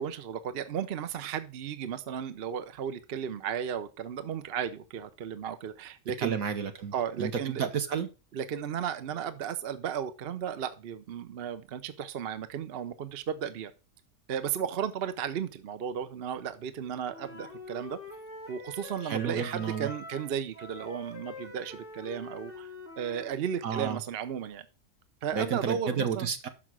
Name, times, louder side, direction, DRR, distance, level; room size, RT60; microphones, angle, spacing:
voice 1, 0.0-6.4 6.9-7.7 8.3-13.7 14.3-18.0 18.5-22.7 23.0-24.7 25.2-26.3, right 8 dB, 50° right, 0.8 m, -34 dB
voice 2, 6.2-8.1 19.0-19.9 23.6-24.0 25.3-26.5, right 7 dB, 75° right, 1.5 m, -31 dB
Wind instrument woodwind instrument, 17.1-23.3, left 2 dB, 10° left, 2.3 m, -45 dB
6.1 x 6.0 x 6.1 m
omnidirectional pair, 1.5 m